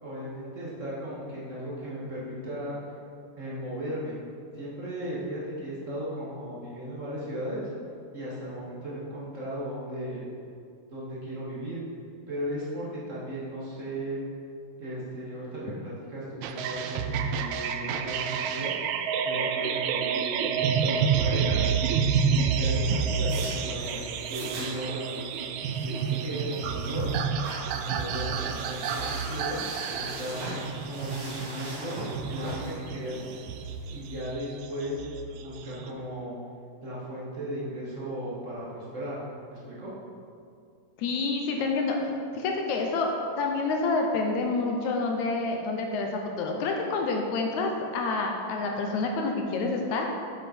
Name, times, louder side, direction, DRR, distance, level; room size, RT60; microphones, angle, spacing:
voice 1, 0.0-2.8 3.4-4.2 4.5-7.7 8.1-10.3 10.9-11.8 12.3-14.2 14.8-18.7 19.2-21.6 22.2-25.2 25.8-27.2 27.7-29.6 29.9-30.5 30.8-33.3 33.9-35.0 35.4-36.4 36.8-39.2 39.5-39.9, equal, 30° right, -8 dB, 1.4 m, -36 dB
sound 1, 16.4-35.9, right 6 dB, 80° right, 1.7 m, -29 dB
sound 2, 22.8-34.2, right 1 dB, 60° right, 3.2 m, -41 dB
voice 2, 41.0-42.0 42.3-50.1, left 3 dB, 75° left, 2 dB, 2.0 m, -28 dB
8.1 x 7.3 x 4.4 m, 2.4 s
omnidirectional pair, 3.8 m